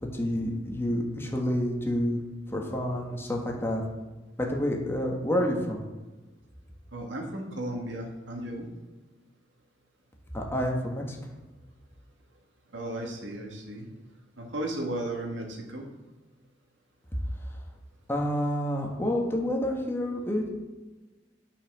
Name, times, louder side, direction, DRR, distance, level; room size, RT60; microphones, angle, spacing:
voice 1, 0.0-2.2 2.5-3.8 4.4-5.8 10.3-11.2 18.1-20.5, equal, 15° left, 0 dB, 1.5 m, -28 dB
voice 2, 6.9-8.7 12.7-13.9 14.4-15.9, right 1 dB, 80° right, 1 dB, 2.0 m, -35 dB
10.0 x 5.7 x 6.3 m, 1.2 s
head